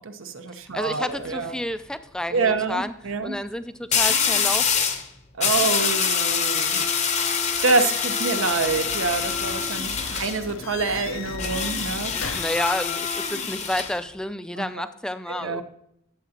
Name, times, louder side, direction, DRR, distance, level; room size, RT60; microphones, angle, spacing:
voice 1, 0.0-1.5 2.3-3.4 5.4-6.8 7.2-7.3 7.6-12.1 14.6-14.7 15.3-15.6, right 4 dB, 80° right, 8 dB, 0.8 m, -26 dB
voice 2, 0.7-2.9 3.2-4.9 12.1-15.6, left 1 dB, 5° left, 11 dB, 0.3 m, -30 dB
sound 1, 0.8-1.1 3.9-5.0 5.4-10.4 11.4-13.9, left 6 dB, 35° left, 0.7 m, -25 dB
sound 2, 7.7-12.6, left 4 dB, 80° left, 0.7 m, -37 dB
11.0 x 7.5 x 2.8 m, 0.75 s
head